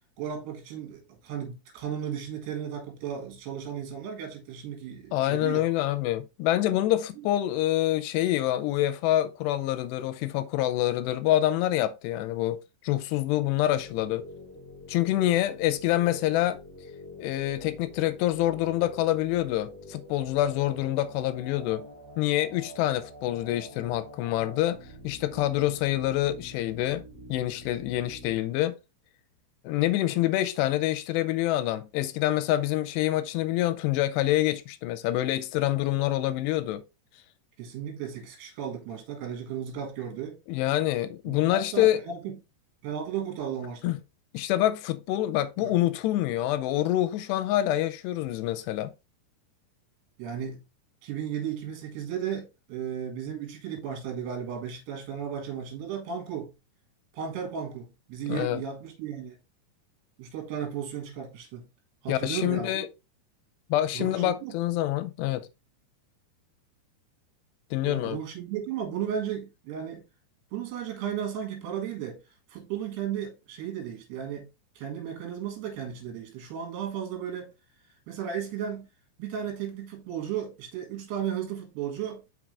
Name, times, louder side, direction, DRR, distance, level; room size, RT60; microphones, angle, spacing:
voice 1, 0.2-5.7 37.6-40.4 41.3-42.4 42.8-44.0 45.6-45.9 50.2-50.6 51.0-56.5 57.1-59.4 60.2-61.7 62.0-62.9 63.9-64.6 67.8-70.0 70.5-72.2 72.5-74.5 74.8-77.5 78.1-78.9 79.2-82.2, right 8 dB, 75° right, 3.9 m, -35 dB
voice 2, 5.1-14.2 14.9-16.6 17.2-21.9 22.2-24.8 25.0-27.0 27.3-28.7 29.6-36.8 40.5-42.0 43.8-44.0 44.3-48.9 58.3-58.6 62.1-62.9 63.7-65.5 67.7-68.2, left 14 dB, 85° left, 2.7 m, -26 dB
sound 1, 13.6-28.4, left 1 dB, 25° left, 1.3 m, -47 dB
6.0 x 5.7 x 3.3 m
omnidirectional pair, 4.9 m